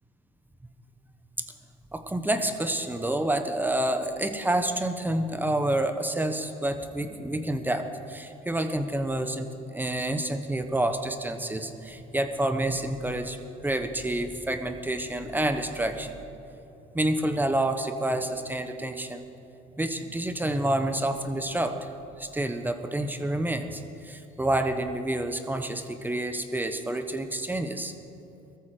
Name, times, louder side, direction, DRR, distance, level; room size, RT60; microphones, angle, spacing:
voice 1, 1.9-16.2 16.9-19.3 19.7-21.8 22.2-27.9, right 1 dB, 10° right, 7 dB, 1.2 m, -28 dB
18.0 x 14.0 x 5.0 m, 2.9 s
supercardioid pair, 80°, 17 cm